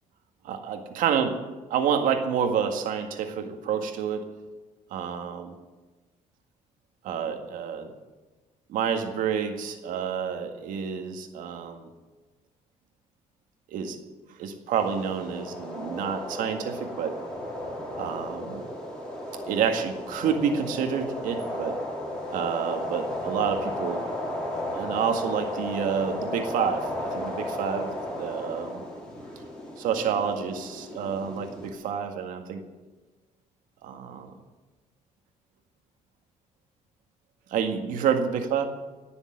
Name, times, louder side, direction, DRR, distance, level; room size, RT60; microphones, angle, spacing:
voice 1, 0.4-1.4 1.7-4.3 4.9-5.4 7.0-7.9 8.7-11.9 13.7-14.0 14.4-17.2 18.0-18.7 19.5-21.8 22.3-24.1 24.7-28.8 29.8-32.6 33.8-34.3 37.5-38.7, right 7 dB, 85° right, 6 dB, 1.9 m, -28 dB
sound 1, 14.7-31.7, left 1 dB, 5° left, 4.9 m, -34 dB
18.0 x 7.1 x 9.9 m, 1.2 s
cardioid pair, 115°, 13 cm